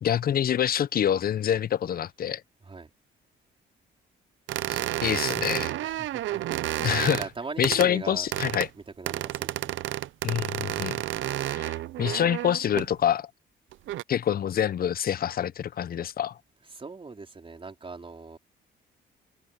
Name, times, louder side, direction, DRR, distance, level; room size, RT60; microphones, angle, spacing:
voice 1, 0.0-2.4 4.7-5.7 6.8-7.2 7.6-8.7 10.2-11.0 11.4-13.3 14.1-16.4, left 10 dB, 50° left, 0.6 m, -26 dB
sound 1, 4.5-7.3 7.6-7.9 8.3-8.7 9.1-12.9 13.7-14.0, right 14 dB, 80° right, 0.6 m, -31 dB
voice 2, 5.8-6.5 6.8-8.3 8.7-9.8 16.7-18.4, right 4 dB, 25° right, 4.2 m, -40 dB
cardioid pair, 90°, 20 cm